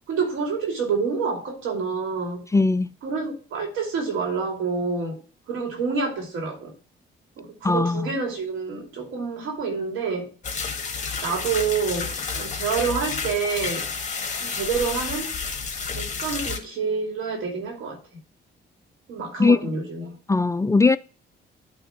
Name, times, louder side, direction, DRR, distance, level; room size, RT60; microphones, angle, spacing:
voice 1, 0.1-2.4 3.0-5.2 5.5-6.7 7.4-10.6 11.2-13.9 14.4-15.4 15.9-18.0 19.1-20.2, right 5 dB, 85° right, 2.7 m, -28 dB
voice 2, 2.5-2.9 7.6-8.1 19.4-19.6 20.3-21.0, left 3 dB, 15° left, 0.3 m, -19 dB
sound 1, 10.4-16.6, left 5 dB, 35° left, 1.8 m, -30 dB
8.9 x 3.4 x 5.8 m
cardioid pair, 90°, 20 cm